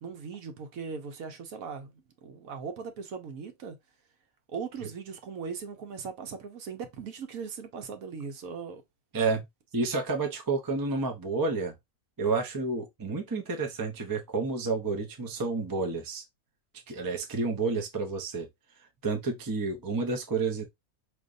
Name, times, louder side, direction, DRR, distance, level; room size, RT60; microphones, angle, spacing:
voice 1, 0.0-3.8 4.5-8.8, right 5 dB, 65° right, 1.2 m, -39 dB
voice 2, 9.7-11.7 12.2-16.2 16.9-18.5 19.0-20.6, right 3 dB, 25° right, 0.5 m, -30 dB
5.0 x 3.1 x 2.6 m
omnidirectional pair, 1.6 m